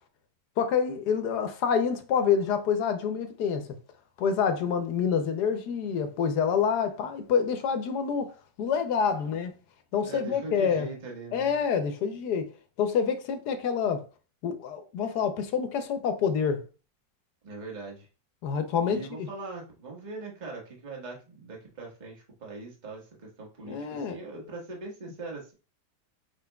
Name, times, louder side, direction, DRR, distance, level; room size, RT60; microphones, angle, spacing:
voice 1, 0.6-3.7 4.2-8.3 8.6-9.5 9.9-10.9 11.3-12.5 12.8-14.0 14.4-16.6 18.4-19.3 23.6-24.2, left 7 dB, 70° left, 1.2 m, -27 dB
voice 2, 10.0-11.5 17.4-18.1 18.8-25.5, right 3 dB, 30° right, 1.2 m, -41 dB
5.0 x 3.8 x 2.2 m
omnidirectional pair, 1.9 m